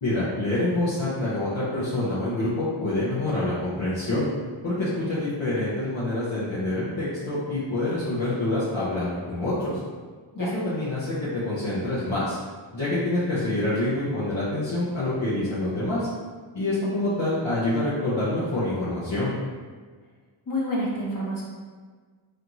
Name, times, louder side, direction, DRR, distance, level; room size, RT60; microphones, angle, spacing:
voice 1, 0.0-4.3 4.6-9.8 10.5-12.4 12.7-16.1 16.5-19.3, left 2 dB, 65° left, -10 dB, 1.1 m, -26 dB
voice 2, 20.5-21.4, equal, 40° left, -5 dB, 1.0 m, -28 dB
3.9 x 3.2 x 3.0 m, 1.5 s
wide cardioid pair, 140°, 49 cm